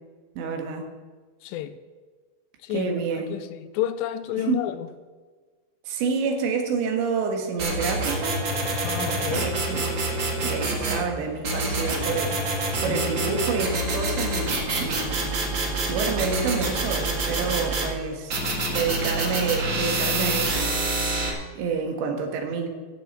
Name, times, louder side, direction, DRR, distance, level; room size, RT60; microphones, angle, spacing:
voice 1, 0.4-0.9 2.7-3.4 4.5-4.6 5.8-8.4 9.0-10.1 10.4-15.3 15.9-18.4 18.7-20.7 21.6-22.7, right 5 dB, 85° right, 3.8 m, -28 dB
voice 2, 1.4-1.8 2.6-4.9 8.8-9.5 12.9-13.3, left 12 dB, 85° left, 2.7 m, -31 dB
sound 1, 7.6-11.0 11.4-17.9 18.3-21.3, right 2 dB, 45° right, 1.6 m, -26 dB
14.5 x 6.9 x 7.4 m
omnidirectional pair, 5.0 m